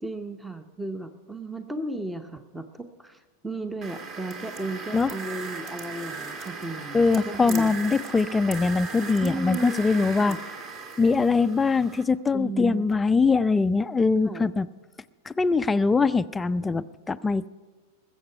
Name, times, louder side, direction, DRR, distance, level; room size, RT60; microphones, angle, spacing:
voice 1, 0.0-7.7 9.2-9.8 10.2-10.4 12.3-12.9 14.2-14.5, right 2 dB, 5° right, 9 dB, 0.8 m, -35 dB
sound 1, 3.8-12.0, right 4 dB, 40° right, 2.0 m, -38 dB
voice 2, 6.9-10.4 11.0-14.7 15.3-17.5, left 4 dB, 10° left, 12 dB, 0.4 m, -22 dB
20.5 x 7.9 x 5.7 m, 1.4 s
figure-of-eight pair, 90°, 0 cm